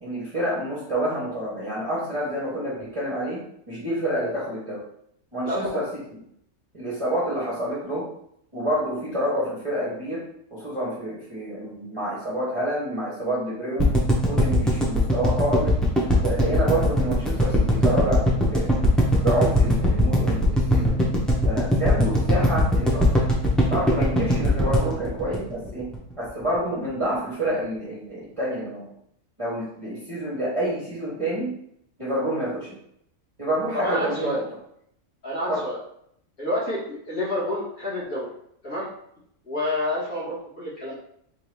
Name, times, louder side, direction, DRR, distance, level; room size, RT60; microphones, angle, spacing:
voice 1, 0.0-3.4 3.7-4.8 5.3-5.9 6.7-8.1 8.5-10.2 10.5-13.9 14.3-15.8 16.2-18.7 19.2-21.0 21.4-23.1 23.7-25.9 26.2-28.9 29.4-31.5 32.0-32.7 33.4-34.4 35.5-35.6, right 1 dB, 25° right, -9 dB, 1.1 m, -28 dB
voice 2, 5.4-5.8 33.7-34.4 35.2-35.8 36.4-38.3 38.6-38.9 39.5-40.9, left 1 dB, 80° left, -8 dB, 2.4 m, -28 dB
sound 1, 13.8-25.9 26.2-26.3 26.5-26.6, left 1 dB, ahead, 0.5 m, -20 dB
4.3 x 2.8 x 3.2 m, 0.70 s
omnidirectional pair, 1.5 m